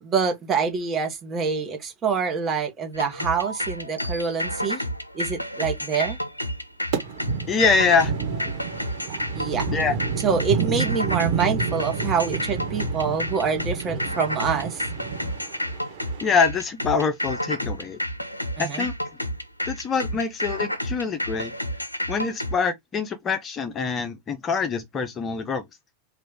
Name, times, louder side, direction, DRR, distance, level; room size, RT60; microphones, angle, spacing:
voice 1, 0.0-4.8 5.1-6.2 9.3-9.6 10.2-14.8 18.6-18.9, right 6 dB, 25° right, 1.0 m, -26 dB
sound 1, 2.9-22.6, equal, 85° left, 0.4 m, -30 dB
sound 2, 6.9-16.3, right 6 dB, 50° right, 1.3 m, -30 dB
voice 2, 7.5-8.1 9.7-10.0 16.2-18.0 18.6-18.9 19.6-21.5 22.1-25.6, left 5 dB, 25° left, 0.5 m, -24 dB
3.1 x 2.4 x 3.5 m
figure-of-eight pair, 85°, 0 cm